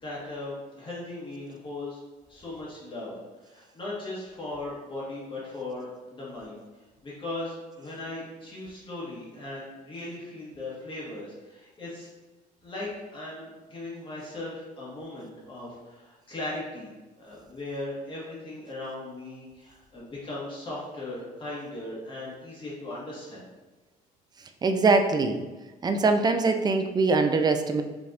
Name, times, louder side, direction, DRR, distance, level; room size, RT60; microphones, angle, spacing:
voice 1, 0.0-2.0 2.3-3.1 3.5-6.6 7.0-12.1 12.6-16.9 17.2-23.4, left 2 dB, 30° left, -6 dB, 1.4 m, -38 dB
voice 2, 24.6-25.4 25.8-27.8, right 3 dB, 25° right, 7 dB, 0.4 m, -22 dB
5.0 x 3.4 x 2.5 m, 1.2 s
cardioid pair, 110°, 17 cm